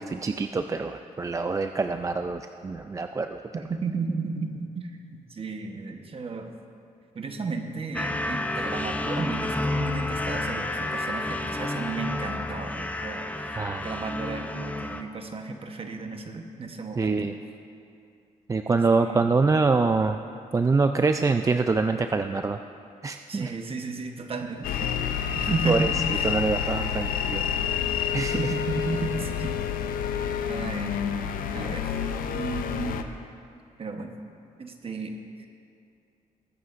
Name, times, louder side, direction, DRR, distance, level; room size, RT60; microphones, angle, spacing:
voice 1, 0.0-3.4 13.6-13.9 17.0-17.3 18.5-20.2 20.5-22.6 23.0-23.5 25.6-25.9 26.2-27.4 28.1-28.5, right 4 dB, 25° right, 7 dB, 0.3 m, -25 dB
voice 2, 3.7-6.5 7.1-17.3 19.0-19.2 23.3-24.9 25.3-26.3 28.2-29.5 29.8-30.0 30.5-31.0 31.5-31.9 32.3-33.1 33.8-34.1 34.6-35.1 35.4-35.5, right 4 dB, 40° right, 5 dB, 1.0 m, -33 dB
sound 1, 7.9-15.0, left 2 dB, 10° left, 0.7 m, -30 dB
sound 2, 24.6-33.0, left 8 dB, 85° left, 0.6 m, -28 dB
21.5 x 8.4 x 2.5 m, 2.5 s
cardioid pair, 85°, 14 cm